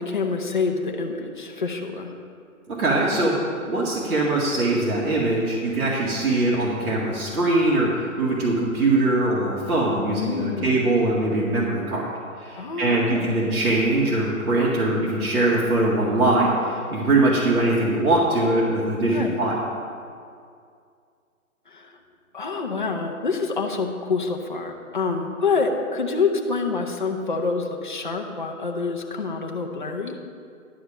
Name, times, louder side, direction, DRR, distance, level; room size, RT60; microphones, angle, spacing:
voice 1, 0.0-2.1 10.1-10.8 12.5-13.3 19.1-19.4 21.7-22.0 22.3-30.2, left 4 dB, 35° left, 2 dB, 0.8 m, -27 dB
voice 2, 2.7-12.1 12.4-19.6, right 2 dB, 90° right, -5 dB, 2.1 m, -22 dB
11.5 x 5.0 x 7.2 m, 2.3 s
hypercardioid pair, 180°, 43 cm